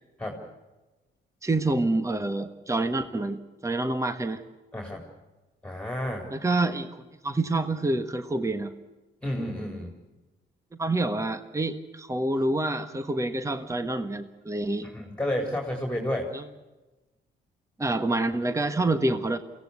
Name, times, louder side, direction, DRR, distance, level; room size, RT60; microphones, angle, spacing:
voice 1, 1.4-4.4 6.3-8.7 10.7-14.9 16.3-16.4 17.8-19.4, right 2 dB, 15° right, 10 dB, 1.4 m, -27 dB
voice 2, 5.6-6.3 9.2-9.9 14.8-16.3, left 1 dB, 5° left, 2 dB, 4.1 m, -31 dB
23.5 x 17.5 x 8.3 m, 1.1 s
cardioid pair, 90°, 20 cm